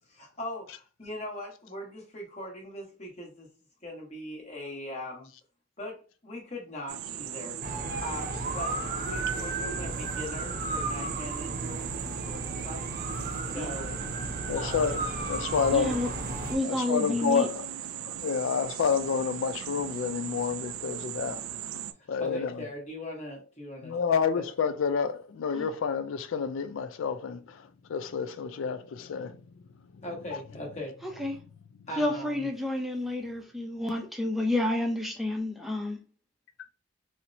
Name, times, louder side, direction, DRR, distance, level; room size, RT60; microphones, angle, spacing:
voice 1, 0.1-3.5 3.8-5.3 5.8-7.6 8.0-12.8 13.5-14.0 14.5-14.9 22.2-24.5 30.0-30.9 31.9-32.5, left 1 dB, 30° left, 1.0 m, -40 dB
sound 1, 6.9-21.9, right 10 dB, 80° right, 0.3 m, -38 dB
sound 2, 7.6-16.6, right 2 dB, 45° right, 0.8 m, -34 dB
voice 2, 14.5-16.0 16.6-17.6 18.0-21.5 22.1-22.5 23.8-29.4, left 6 dB, 70° left, 0.3 m, -29 dB
voice 3, 15.7-16.1 16.5-17.5 25.5-25.7 31.0-31.4 32.0-36.0, left 1 dB, ahead, 0.5 m, -30 dB
4.2 x 2.1 x 2.6 m
head